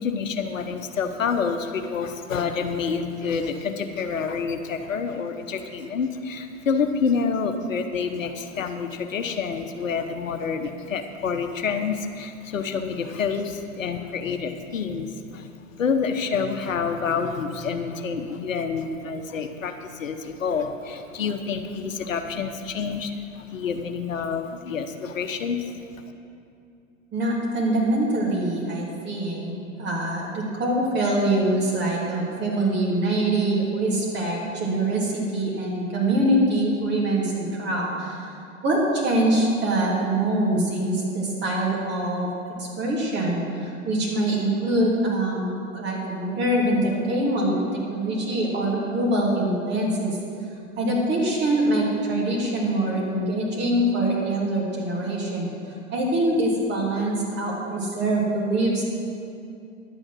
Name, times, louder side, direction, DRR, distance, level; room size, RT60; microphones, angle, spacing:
voice 1, 0.0-25.8, left 5 dB, 75° left, 6 dB, 1.0 m, -28 dB
voice 2, 27.1-38.3 38.6-42.3 42.6-47.6 47.9-50.2 50.8-55.5 55.9-58.8, right 1 dB, 25° right, -4 dB, 3.2 m, -24 dB
11.0 x 8.8 x 6.1 m, 2.5 s
figure-of-eight pair, 105°, 39 cm